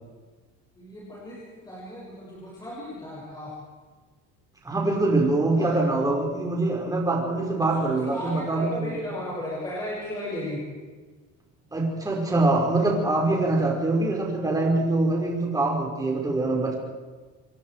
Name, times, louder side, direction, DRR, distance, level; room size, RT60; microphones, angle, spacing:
voice 1, 0.7-3.5 5.4-5.8 7.8-10.6, left 1 dB, 10° left, -6 dB, 6.7 m, -35 dB
voice 2, 4.6-9.0 11.7-16.7, right 2 dB, 10° right, -1 dB, 5.2 m, -24 dB
28.0 x 23.5 x 4.9 m, 1.4 s
cardioid pair, 170°, 32 cm